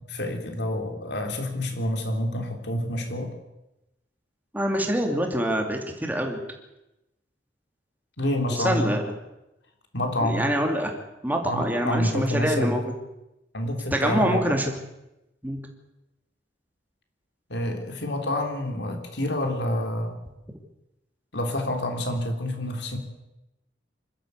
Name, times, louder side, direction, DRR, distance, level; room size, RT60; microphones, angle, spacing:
voice 1, 0.0-3.3 8.2-8.9 9.9-10.5 11.4-12.8 13.5-14.6 17.5-20.2 21.3-23.0, left 1 dB, 60° left, 4 dB, 3.6 m, -28 dB
voice 2, 4.5-6.4 8.5-9.0 10.2-10.9 11.2-12.8 13.9-14.7 15.4-15.6, equal, 10° right, 2 dB, 2.7 m, -25 dB
25.5 x 13.0 x 8.3 m, 0.93 s
head